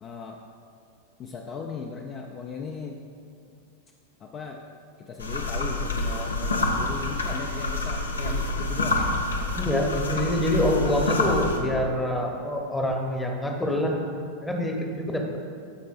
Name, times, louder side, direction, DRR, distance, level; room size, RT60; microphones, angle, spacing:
voice 1, 0.0-0.4 1.2-3.0 4.2-4.6 5.0-9.1, left 5 dB, 30° left, 2 dB, 0.5 m, -37 dB
sound 1, 5.2-11.6, left 2 dB, 75° left, 0.8 m, -27 dB
voice 2, 9.6-14.0 14.4-15.4, left 1 dB, 10° left, 1 dB, 0.9 m, -26 dB
14.0 x 5.3 x 2.5 m, 2.4 s
figure-of-eight pair, 90°, 0 cm